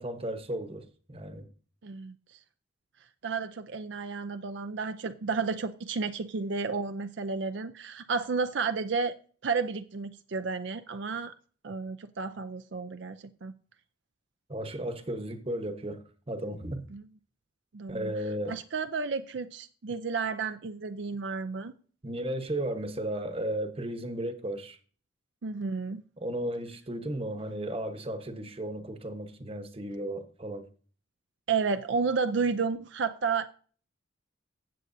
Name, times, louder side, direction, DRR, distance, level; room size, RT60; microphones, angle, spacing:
voice 1, 0.0-1.5 14.5-16.8 17.9-18.5 22.0-24.8 26.2-30.7, right 1 dB, 30° right, 1.1 m, -35 dB
voice 2, 1.8-2.2 3.2-9.1 9.4-11.3 11.6-13.5 16.9-17.0 17.7-18.1 18.5-21.7 25.4-26.0 31.5-33.5, right 5 dB, 65° right, 0.5 m, -32 dB
15.5 x 7.9 x 2.7 m
head